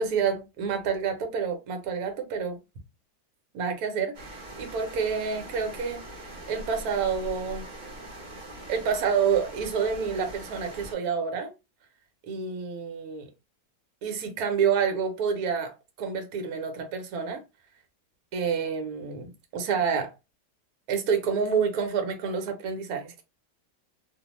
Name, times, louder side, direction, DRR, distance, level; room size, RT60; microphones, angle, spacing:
voice 1, 0.0-2.6 3.5-7.6 8.7-11.5 12.3-13.3 14.0-17.4 18.3-20.1 20.9-23.2, right 6 dB, 70° right, 1.1 m, -28 dB
sound 1, 4.1-10.9, right 1 dB, 40° right, 0.8 m, -42 dB
2.7 x 2.0 x 2.9 m
omnidirectional pair, 1.8 m